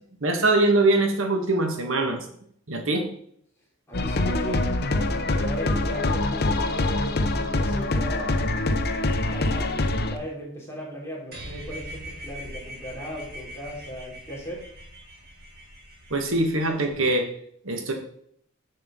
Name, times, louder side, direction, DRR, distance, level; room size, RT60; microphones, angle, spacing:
voice 1, 0.2-2.2 2.7-3.0 16.1-17.3 17.6-17.9, right 2 dB, 80° right, 4 dB, 1.5 m, -22 dB
sound 1, 3.9-10.2, left 2 dB, 55° left, 0.8 m, -24 dB
voice 2, 3.9-4.7 5.3-8.5 9.1-14.7, equal, 15° left, -4 dB, 3.0 m, -37 dB
sound 2, 11.3-16.9, equal, 55° right, 3.6 m, -42 dB
7.4 x 6.8 x 3.7 m, 0.66 s
head